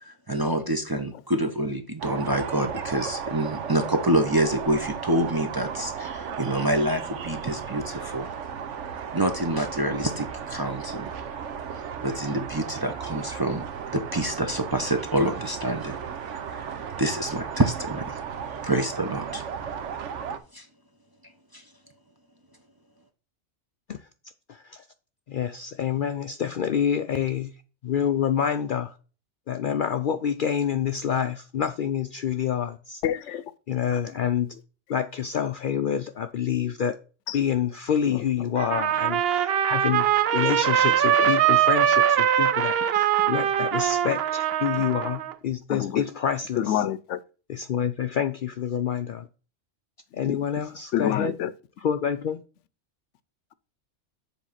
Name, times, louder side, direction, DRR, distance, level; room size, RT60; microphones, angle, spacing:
voice 1, 0.0-8.3 9.1-11.1 12.0-13.7 13.9-16.0 16.5-18.2 18.6-19.4 20.5-20.7 21.5-21.6, right 1 dB, 25° right, 0.6 m, -27 dB
sound 1, 2.0-20.4, right 7 dB, 85° right, 1.1 m, -35 dB
voice 2, 24.5-24.8 25.3-27.5 27.8-28.9 29.5-33.0 33.7-34.5 34.9-37.0 37.3-40.1 40.3-46.8 47.5-49.3 50.1-51.4 51.8-52.4, left 8 dB, 60° left, 0.5 m, -27 dB
voice 3, 33.0-33.4 37.3-37.4 41.2-41.3 45.7-46.0 46.6-47.2 50.2-50.4 50.9-51.5, left 11 dB, 80° left, 0.9 m, -27 dB
Trumpet, 38.6-45.3, right 10 dB, 65° right, 0.8 m, -22 dB
7.3 x 3.5 x 5.7 m
omnidirectional pair, 1.2 m